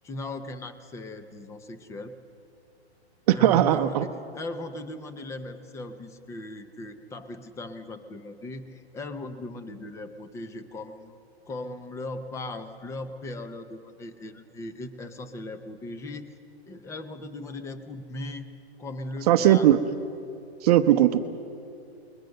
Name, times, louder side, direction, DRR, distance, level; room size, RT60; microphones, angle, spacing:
voice 1, 0.0-2.2 3.3-16.3 16.7-18.5 18.8-19.7, left 2 dB, 10° left, 10 dB, 0.7 m, -38 dB
voice 2, 3.3-4.1 19.3-19.8 20.6-21.2, right 12 dB, 35° right, 8 dB, 0.8 m, -19 dB
27.0 x 21.5 x 6.6 m, 2.7 s
hypercardioid pair, 145°, 33 cm